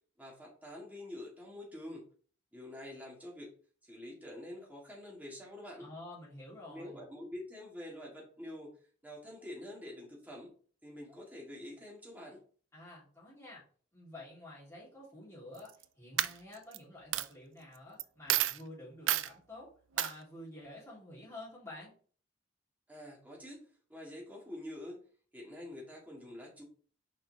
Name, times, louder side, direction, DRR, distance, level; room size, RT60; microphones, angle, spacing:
voice 1, 0.2-2.1 2.5-3.5 3.8-5.9 6.7-8.7 9.0-10.5 10.8-12.4 22.9-25.0 25.3-26.6, left 1 dB, 10° right, -3 dB, 2.1 m, -47 dB
voice 2, 5.8-7.0 12.7-13.6 13.9-15.7 16.0-21.9, left 1 dB, 15° left, -7 dB, 3.4 m, -50 dB
Coin (dropping), 15.5-15.8 16.2-16.8 17.1-17.3 18.0-18.1 18.3-18.6 19.1-19.3 20.0-20.1, right 12 dB, 85° right, 0.4 m, -30 dB
6.6 x 4.9 x 3.5 m, 0.44 s
head